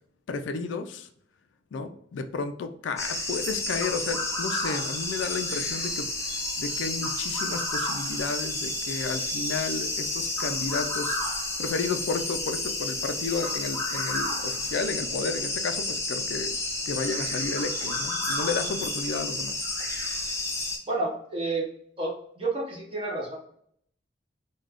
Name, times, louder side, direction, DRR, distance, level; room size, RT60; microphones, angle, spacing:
voice 1, 0.3-1.1 1.7-11.2 11.6-16.5 16.9-19.6, left 4 dB, 85° left, 9 dB, 0.3 m, -32 dB
sound 1, 3.0-20.8, left 2 dB, 15° left, 0.4 m, -30 dB
voice 2, 20.9-21.7 22.0-23.4, right 2 dB, 30° right, -2 dB, 0.7 m, -30 dB
2.4 x 2.2 x 3.4 m, 0.66 s
head